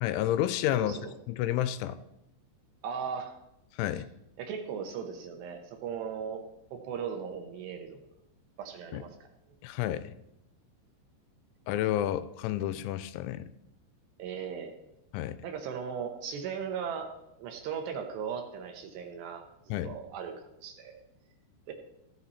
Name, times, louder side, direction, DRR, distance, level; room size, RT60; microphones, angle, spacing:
voice 1, 0.0-1.0 1.3-2.0 3.8-4.1 8.9-9.0 9.6-10.1 11.7-13.5 15.1-15.4 19.7-20.0, left 12 dB, 85° left, 13 dB, 2.9 m, -30 dB
voice 2, 0.8-1.1 1.9-2.0 2.8-3.4 4.4-6.4 6.7-8.0 8.6-9.3 14.2-14.7 15.4-17.1 17.4-19.4 19.8-21.0 21.7-21.8, right 7 dB, 70° right, 5 dB, 2.9 m, -37 dB
15.5 x 8.1 x 4.2 m, 0.86 s
omnidirectional pair, 5.5 m